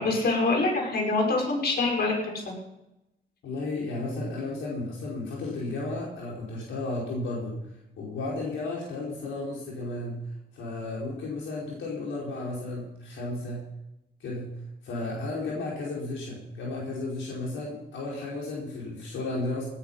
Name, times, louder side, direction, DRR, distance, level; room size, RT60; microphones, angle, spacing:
voice 1, 0.0-2.6, left 3 dB, 55° left, 0 dB, 6.0 m, -25 dB
voice 2, 3.4-7.6 8.0-10.2 10.5-13.6 14.2-14.5 14.8-19.7, left 2 dB, 75° left, -4 dB, 5.1 m, -33 dB
18.0 x 10.0 x 5.8 m, 0.88 s
cardioid pair, 90°, 20 cm